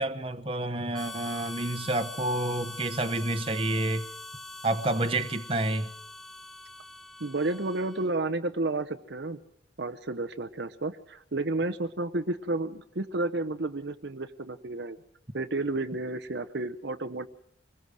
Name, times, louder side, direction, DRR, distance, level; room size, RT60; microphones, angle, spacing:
voice 1, 0.0-4.1 4.6-5.9, right 2 dB, 30° right, 1.1 m, -29 dB
Harmonica, 0.9-8.2, left 2 dB, ahead, 0.9 m, -43 dB
voice 2, 7.2-9.4 9.8-15.0 15.3-17.3, right 2 dB, 55° right, 0.8 m, -31 dB
25.0 x 20.5 x 6.3 m
head